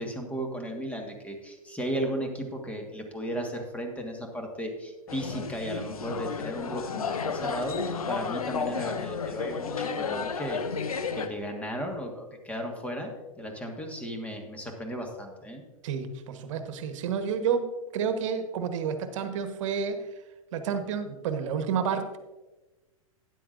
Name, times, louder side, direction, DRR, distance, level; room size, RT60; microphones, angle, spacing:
voice 1, 0.0-10.9 11.1-13.1 13.4-15.6, equal, 5° left, 2 dB, 1.6 m, -35 dB
sound 1, 5.1-11.3, left 5 dB, 85° left, 0.7 m, -32 dB
voice 2, 15.8-20.0 20.5-22.2, right 6 dB, 60° right, 8 dB, 1.2 m, -30 dB
12.5 x 10.0 x 2.6 m, 1.2 s
hypercardioid pair, 105°, 18 cm